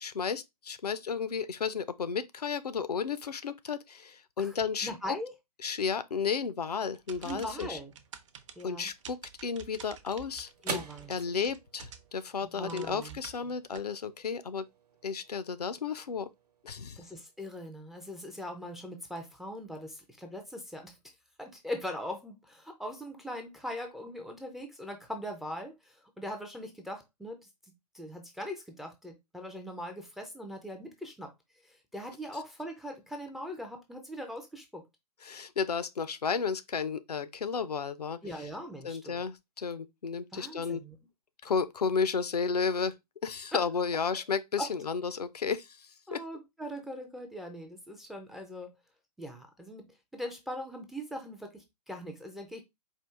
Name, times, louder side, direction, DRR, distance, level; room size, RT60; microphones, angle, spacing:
voice 1, 0.0-4.9 5.6-7.8 8.6-10.8 11.1-14.6 15.0-16.3 16.6-17.0 35.2-38.5 38.8-40.8 41.4-42.9 43.2-46.2, left 6 dB, 75° left, 0.5 m, -33 dB
voice 2, 4.8-5.3 7.2-7.9 8.6-8.9 10.6-11.1 12.4-13.2 17.0-21.0 21.4-27.5 27.9-31.3 31.6-34.8 38.2-39.2 40.3-41.0 43.5-43.6 44.6-44.7 46.1-48.7 49.2-52.6, equal, ahead, 0.3 m, -41 dB
sound 1, 7.0-12.3 12.7-13.8, right 8 dB, 50° right, 0.6 m, -49 dB
sound 2, 9.4-17.9, right 4 dB, 75° right, 1.0 m, -47 dB
4.5 x 2.4 x 3.4 m
figure-of-eight pair, 120°, 20 cm